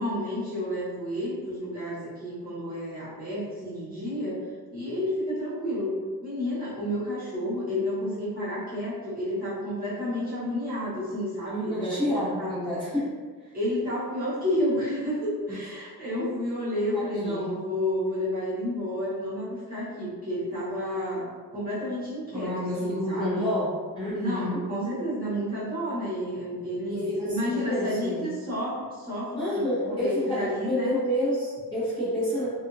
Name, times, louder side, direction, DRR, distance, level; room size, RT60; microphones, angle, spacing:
voice 1, 0.0-4.4 4.7-5.9 6.2-12.0 12.4-12.5 13.5-23.5 24.1-31.0, left 1 dB, 20° right, -12 dB, 1.2 m, -30 dB
voice 2, 11.5-13.2 13.4-13.5 15.5-15.6 16.2-16.3 16.9-17.5 22.3-23.7 23.9-24.6 26.9-28.2 29.4-32.5, equal, 10° left, -13 dB, 1.0 m, -29 dB
2.6 x 2.4 x 2.6 m, 1.5 s
wide cardioid pair, 160°, 39 cm